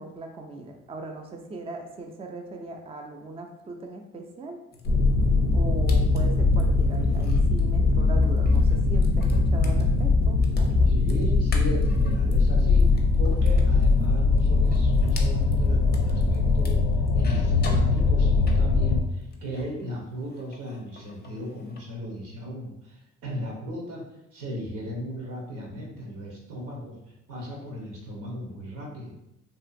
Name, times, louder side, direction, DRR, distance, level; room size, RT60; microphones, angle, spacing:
voice 1, 0.0-4.6 5.5-10.9, right 2 dB, 20° right, 3 dB, 0.4 m, -39 dB
sound 1, 4.7-19.9 20.2-21.9, left 2 dB, 35° left, 0.5 m, -45 dB
sound 2, 4.8-19.0, left 3 dB, 90° left, 0.5 m, -21 dB
voice 2, 10.9-16.9 17.1-29.1, equal, 85° right, -2 dB, 0.9 m, -36 dB
2.8 x 2.4 x 2.5 m, 0.86 s
cardioid pair, 90°, 30 cm